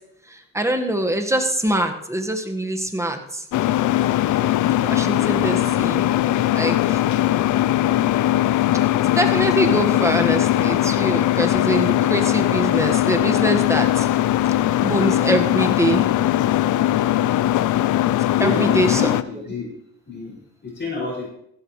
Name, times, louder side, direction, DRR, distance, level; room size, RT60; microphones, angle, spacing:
voice 1, 0.3-3.4 4.8-6.0 6.5-7.0 9.1-14.1 14.8-16.0 18.4-19.1, right 1 dB, 10° right, 4 dB, 1.6 m, -23 dB
sound 1, 3.5-19.2, left 13 dB, 80° left, 0.6 m, -20 dB
voice 2, 18.3-19.7 20.1-20.4 20.6-21.3, left 3 dB, 35° left, -4 dB, 6.2 m, -29 dB
15.0 x 12.5 x 3.2 m, 0.72 s
cardioid pair, 90°, 30 cm